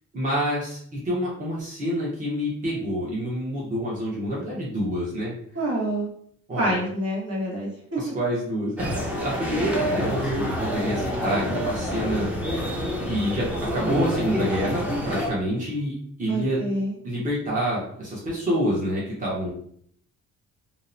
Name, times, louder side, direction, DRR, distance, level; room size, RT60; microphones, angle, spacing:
voice 1, 0.1-0.8 1.0-5.3 6.5-6.8 8.0-12.3 13.0-16.6 17.0-19.5, equal, 25° right, -6 dB, 0.9 m, -27 dB
voice 2, 5.5-6.1 6.6-8.0 16.3-16.9, right 1 dB, 55° right, -4 dB, 1.2 m, -27 dB
sound 1, 8.8-15.3, equal, 5° right, 0.5 m, -27 dB
2.7 x 2.1 x 2.6 m, 0.64 s
cardioid pair, 90°, 30 cm